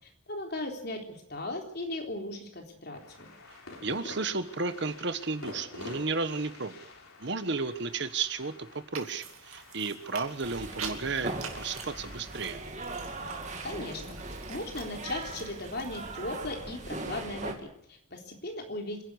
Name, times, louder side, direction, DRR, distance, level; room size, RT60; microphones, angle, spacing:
voice 1, 0.3-3.3 13.6-14.2 14.5-19.0, left 2 dB, 50° left, 3 dB, 3.7 m, -37 dB
sound 1, 2.9-14.4, left 2 dB, 90° left, 4.1 m, -49 dB
voice 2, 3.8-6.8 7.2-12.6, right 4 dB, 55° right, 10 dB, 1.3 m, -33 dB
sound 2, 8.9-16.4, right 7 dB, 85° right, 2.8 m, -46 dB
sound 3, 10.4-17.5, right 2 dB, 35° right, 2.4 m, -39 dB
26.0 x 11.5 x 9.7 m, 0.72 s
head